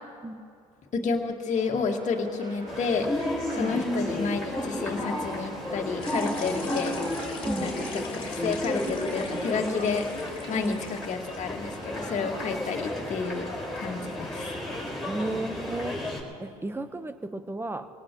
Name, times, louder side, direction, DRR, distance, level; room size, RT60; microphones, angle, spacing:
voice 1, 0.9-3.1 3.5-7.0 7.6-10.0 10.5-10.8 11.0-13.5 13.8-14.6, left 5 dB, 45° left, 2 dB, 2.1 m, -30 dB
sound 1, 1.5-16.1, right 1 dB, 50° right, 5.2 m, -47 dB
sound 2, 2.7-16.2, left 1 dB, ahead, 5.4 m, -33 dB
voice 2, 3.5-3.9 7.4-7.7 10.5-10.8 15.1-16.0 16.4-17.9, right 2 dB, 15° right, 10 dB, 1.2 m, -33 dB
sound 3, 6.0-11.6, left 4 dB, 30° left, 3.2 m, -43 dB
24.5 x 18.5 x 3.2 m, 2.4 s
hypercardioid pair, 65°, 17 cm